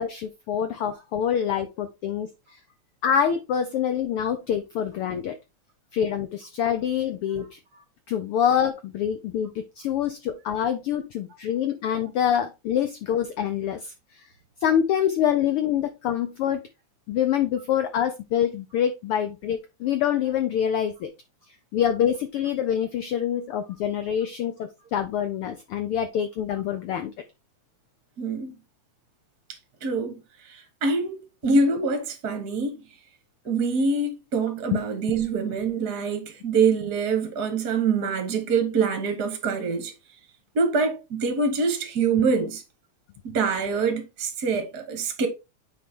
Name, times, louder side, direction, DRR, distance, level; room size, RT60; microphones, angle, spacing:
voice 1, 0.0-2.3 3.0-5.3 5.9-7.6 8.1-14.2 14.6-16.6 17.1-21.1 21.7-27.1 34.7-34.8, left 9 dB, 80° left, 1.2 m, -26 dB
voice 2, 28.2-28.5 29.8-30.2 30.5-32.8 33.4-39.9 40.5-42.6 43.2-45.3, right 4 dB, 50° right, 1.3 m, -25 dB
9.4 x 4.3 x 3.5 m
omnidirectional pair, 3.3 m